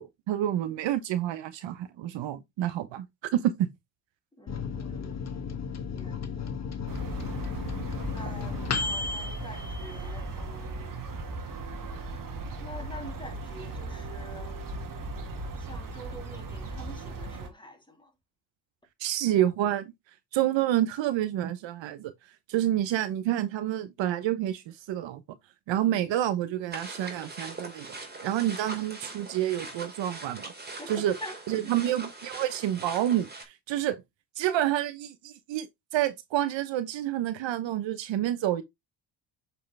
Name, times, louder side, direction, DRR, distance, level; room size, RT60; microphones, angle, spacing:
voice 1, 0.0-3.1 3.3-3.7 19.0-19.9 20.3-22.1 22.5-25.2 25.7-27.9 28.2-30.5 30.9-31.2 31.5-34.0 34.4-38.6, right 12 dB, 70° right, 1.1 m, -28 dB
voice 2, 4.4-5.3 5.9-6.5 8.1-11.0 12.6-14.6 15.0-18.1 30.8-30.9 31.2-31.4 31.6-31.8, equal, 10° left, 3.1 m, -46 dB
Microwave oven, 4.5-10.6 11.0-11.1 11.3-11.9, left 5 dB, 35° left, 1.3 m, -34 dB
sound 1, 6.9-17.5, right 2 dB, 45° right, 2.1 m, -37 dB
sound 2, 26.7-33.4, right 3 dB, 20° right, 2.8 m, -42 dB
7.9 x 4.9 x 3.3 m
cardioid pair, 90°, 47 cm